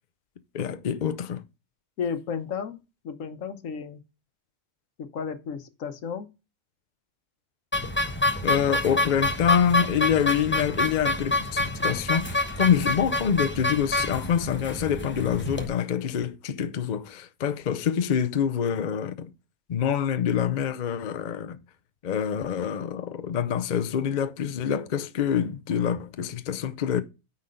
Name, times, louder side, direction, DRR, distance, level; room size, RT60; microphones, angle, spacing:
voice 1, 0.5-1.4 8.4-19.3 19.7-21.6 22.0-27.0, left 8 dB, 50° left, 0.6 m, -26 dB
voice 2, 2.0-2.8 3.0-4.0 5.0-6.3, left 6 dB, 80° left, 1.3 m, -33 dB
sound 1, 7.7-15.7, left 2 dB, 10° left, 0.9 m, -27 dB
9.6 x 4.2 x 5.2 m
omnidirectional pair, 1.4 m